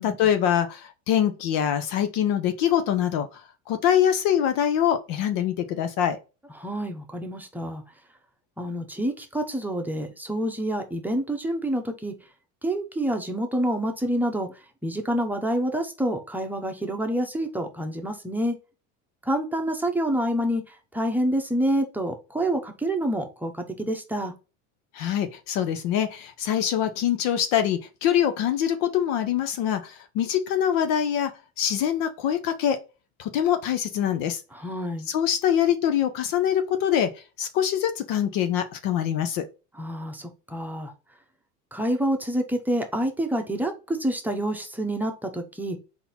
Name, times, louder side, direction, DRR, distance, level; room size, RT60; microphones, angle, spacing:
voice 1, 0.0-3.4 3.7-6.2 24.9-31.3 31.6-32.8 33.2-34.4 35.1-39.5, left 9 dB, 65° left, 0.8 m, -24 dB
voice 2, 6.6-7.8 8.6-12.2 12.6-18.6 19.2-24.3 34.5-35.1 39.7-40.9 41.7-45.8, right 1 dB, 5° right, 0.9 m, -27 dB
3.9 x 2.8 x 4.2 m
supercardioid pair, 115°, 39 cm